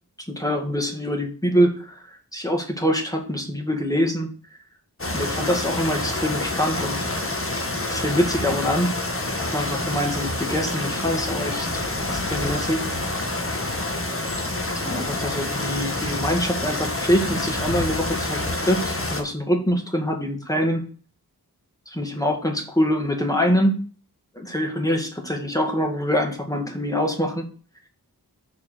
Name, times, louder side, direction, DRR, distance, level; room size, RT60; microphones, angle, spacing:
voice 1, 0.3-4.3 5.1-7.0 7.9-9.0 9.5-12.9 14.7-20.8 21.9-23.8 24.3-27.4, equal, 10° left, 2 dB, 2.2 m, -24 dB
sound 1, 5.0-19.2, left 2 dB, 35° left, 1.5 m, -27 dB
6.8 x 4.3 x 6.6 m, 0.39 s
wide cardioid pair, 55°, 38 cm